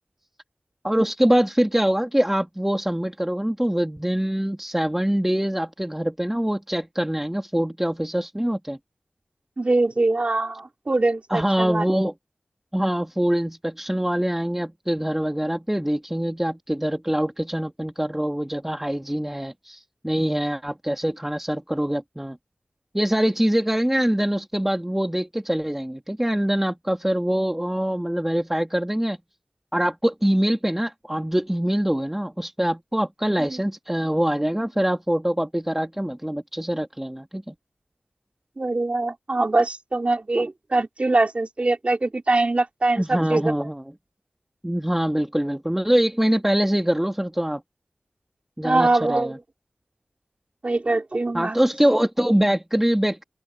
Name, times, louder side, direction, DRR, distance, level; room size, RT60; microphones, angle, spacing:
voice 1, 0.8-8.8 11.3-12.1 12.7-22.4 22.9-29.2 29.7-37.5 43.0-43.8 44.6-47.6 48.6-49.4 51.3-53.2, equal, 10° right, 2.2 m, -24 dB
voice 2, 9.6-11.9 33.4-33.6 38.6-43.5 48.6-49.4 50.6-51.6, right 2 dB, 50° right, 4.1 m, -23 dB
open air
wide cardioid pair, 60°, 3 cm